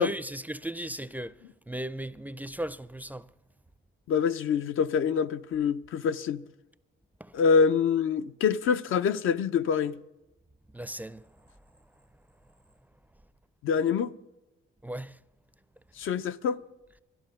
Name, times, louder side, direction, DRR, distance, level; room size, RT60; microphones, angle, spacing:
voice 1, 0.0-1.4 1.7-3.3 7.2-7.4 10.7-11.3 14.8-15.2, right 1 dB, 10° right, 0.4 m, -36 dB
voice 2, 4.1-6.4 7.3-9.9 13.6-14.1 16.0-16.6, left 6 dB, 75° left, 0.6 m, -25 dB
12.5 x 12.0 x 6.6 m
cardioid pair, 95°, 21 cm